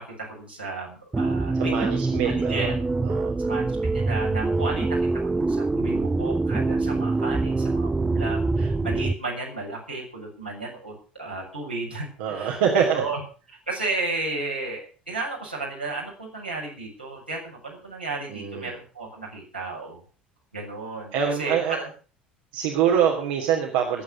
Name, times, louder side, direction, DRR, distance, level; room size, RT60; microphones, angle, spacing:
voice 1, 0.0-2.7 3.4-13.2 13.7-20.0 20.5-21.9, right 3 dB, 90° right, -4 dB, 6.9 m, -33 dB
sound 1, 1.1-9.1, right 3 dB, 15° right, 0.8 m, -24 dB
voice 2, 1.5-2.7 3.0-3.3 4.5-4.8 6.8-7.1 12.2-13.0 18.3-18.7 21.1-21.8 22.5-24.0, right 8 dB, 60° right, 1 dB, 2.9 m, -25 dB
21.0 x 8.9 x 6.3 m, 0.38 s
figure-of-eight pair, 65°, 5 cm